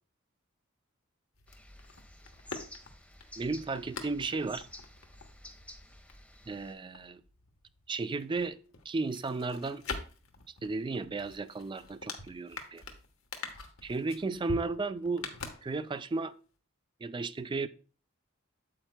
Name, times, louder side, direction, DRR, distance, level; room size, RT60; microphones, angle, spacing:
sound 1, 1.3-7.9 8.2-16.2 16.4-16.5, left 4 dB, 75° left, 1.2 m, -45 dB
sound 2, 1.5-6.7, left 1 dB, 5° left, 1.2 m, -52 dB
voice 1, 3.4-4.7 6.5-7.2 7.9-8.6 8.9-9.8 10.6-12.8 13.8-15.3 15.6-16.3 17.0-17.7, right 3 dB, 25° right, 0.4 m, -34 dB
8.6 x 8.0 x 2.2 m
head